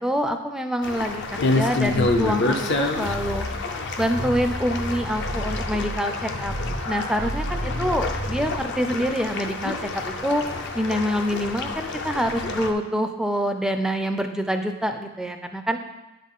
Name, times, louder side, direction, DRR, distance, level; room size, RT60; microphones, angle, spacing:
voice 1, 0.0-3.5 4.0-6.5 6.8-10.4 10.7-15.8, equal, 5° right, 6 dB, 0.4 m, -26 dB
sound 1, 0.8-12.7, left 2 dB, 55° left, 0.5 m, -28 dB
sound 2, 1.8-8.7, equal, 75° left, 1.5 m, -32 dB
9.3 x 3.9 x 3.6 m, 1.0 s
head